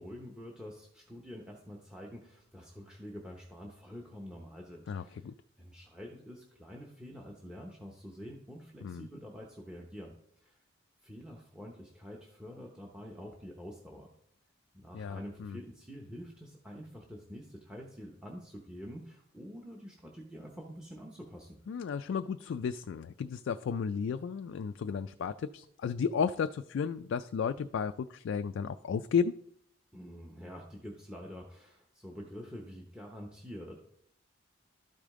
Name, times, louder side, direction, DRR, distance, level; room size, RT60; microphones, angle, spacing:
voice 1, 0.0-5.3 5.6-10.6 11.0-14.1 14.7-21.6 29.9-33.7, equal, 5° right, 0 dB, 0.8 m, -47 dB
voice 2, 4.9-5.3 8.8-9.0 14.9-15.6 21.7-29.3, left 6 dB, 70° left, 9 dB, 0.3 m, -33 dB
12.5 x 5.1 x 3.7 m, 0.69 s
head